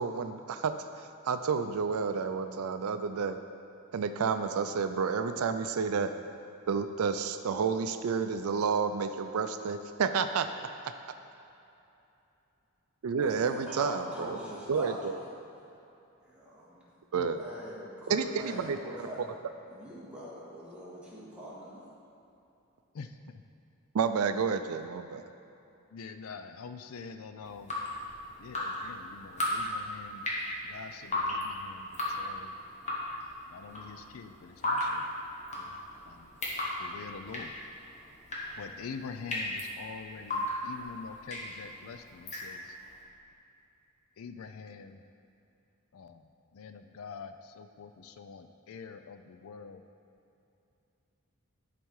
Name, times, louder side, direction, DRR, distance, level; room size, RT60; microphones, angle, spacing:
voice 1, 0.0-3.4 3.9-6.1 6.7-10.5 13.0-14.4 14.7-15.2 17.1-17.4 18.1-19.1 23.9-25.2, right 5 dB, 85° right, 9 dB, 0.4 m, -30 dB
voice 2, 13.1-15.2 16.2-16.8 17.4-19.3 19.7-21.8, equal, 5° right, -8 dB, 1.8 m, -43 dB
voice 3, 25.9-27.7 28.4-30.2 30.7-32.6 33.5-35.1 35.6-35.8 36.1-36.3 36.8-37.5 38.6-42.7 44.2-45.0 45.9-46.2 46.5-49.8, left 5 dB, 70° left, 8 dB, 0.4 m, -45 dB
Drip, 27.4-42.9, left 1 dB, 35° left, 1.3 m, -36 dB
11.5 x 4.2 x 4.7 m, 2.8 s
head